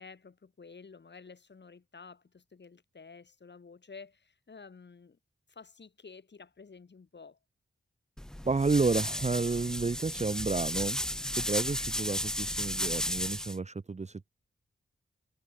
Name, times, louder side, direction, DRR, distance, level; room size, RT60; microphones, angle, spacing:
voice 1, 0.0-5.2 5.5-7.4, left 5 dB, 55° left, 6.2 m, -51 dB
sound 1, 8.2-13.6, left 1 dB, 5° left, 0.3 m, -34 dB
voice 2, 8.4-11.0 11.4-14.3, right 4 dB, 35° right, 1.1 m, -31 dB
wide cardioid pair, 90°, 21 cm